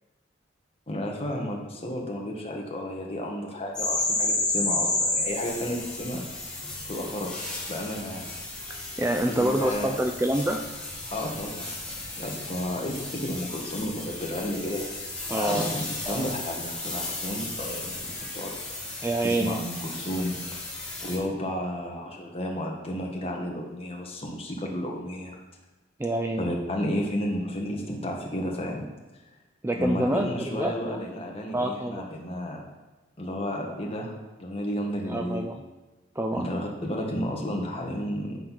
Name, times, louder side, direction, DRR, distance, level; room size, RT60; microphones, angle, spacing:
voice 1, 0.9-6.6 6.9-7.3 7.7-8.3 9.2-9.9 11.1-11.7 12.2-14.9 15.3-18.5 19.2-20.7 21.0-25.4 26.4-28.8 29.7-32.6 33.2-34.1 34.4-35.5 36.3-38.4, left 1 dB, 30° left, -1 dB, 1.5 m, -32 dB
sound 1, 3.7-21.2, left 2 dB, 5° left, 1.7 m, -33 dB
voice 2, 9.0-10.6 15.3-15.7 16.1-16.3 19.0-19.6 26.0-26.5 29.6-31.0 31.5-32.1 35.1-35.6 36.2-36.5, right 1 dB, 10° right, 4 dB, 0.4 m, -27 dB
10.0 x 4.4 x 5.8 m, 1.1 s
head